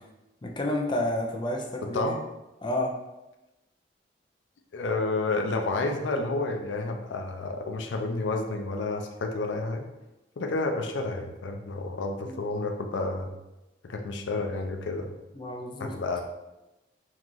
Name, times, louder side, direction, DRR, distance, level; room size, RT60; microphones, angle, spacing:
voice 1, 0.4-2.2 2.6-2.9 12.2-12.4 15.4-15.9, left 1 dB, 25° left, 1 dB, 0.4 m, -30 dB
voice 2, 4.7-9.9 10.4-13.3 13.9-15.1 15.8-16.2, left 3 dB, 90° left, 4 dB, 0.4 m, -30 dB
2.9 x 2.4 x 3.7 m, 0.98 s
head